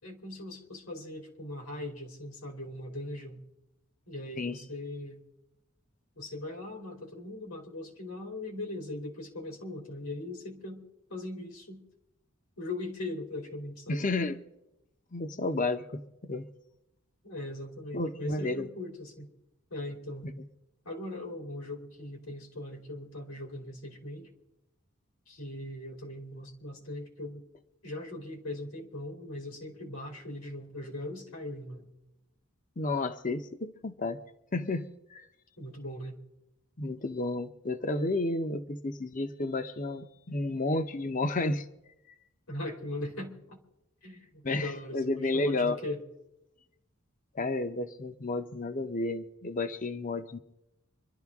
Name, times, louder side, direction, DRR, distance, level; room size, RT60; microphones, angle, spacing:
voice 1, 0.0-3.4 4.1-5.2 6.1-10.8 11.1-11.8 12.6-14.1 17.2-19.3 19.7-20.3 20.8-24.3 25.3-27.4 27.8-31.9 35.6-36.2 42.5-43.6 44.0-46.0, left 1 dB, 90° left, 3.1 m, -40 dB
voice 2, 13.9-14.4 15.1-16.5 17.9-18.7 20.4-20.5 32.8-34.2 34.5-35.2 36.8-41.7 44.4-45.8 47.3-50.4, left 2 dB, 40° left, 0.7 m, -32 dB
25.5 x 12.0 x 3.6 m
head